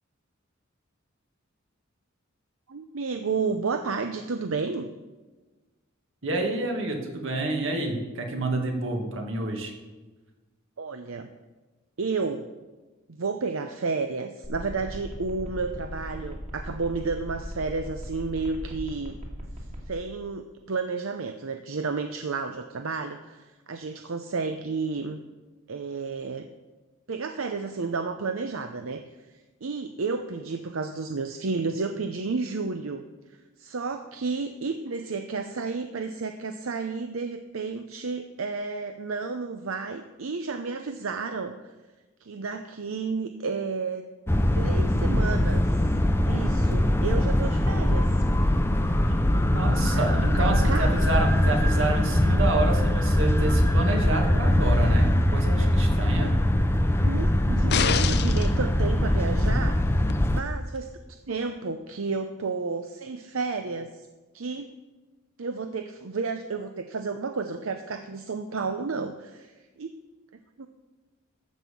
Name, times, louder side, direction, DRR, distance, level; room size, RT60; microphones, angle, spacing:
voice 1, 2.7-4.9 10.8-11.3 12.0-12.5 13.2-19.2 19.9-25.2 25.7-26.5 27.1-29.0 29.6-33.0 33.3-41.5 42.2-44.1 44.5-45.6 46.3-48.2 49.1-49.5 49.9-51.0 56.1-56.4 57.0-60.0 60.3-64.1 64.3-64.7 65.4-69.9 70.6-70.7, right 4 dB, 85° right, 7 dB, 0.7 m, -31 dB
voice 2, 6.2-9.7 49.5-56.3, right 2 dB, 70° right, 2 dB, 2.1 m, -29 dB
sound 1, 14.4-19.9, equal, 35° right, 2.4 m, -38 dB
sound 2, 44.3-60.4, left 1 dB, 10° left, 0.6 m, -22 dB
sound 3, 57.7-58.5 60.1-60.2, left 7 dB, 55° left, 0.6 m, -25 dB
13.5 x 5.6 x 7.1 m, 1.2 s
head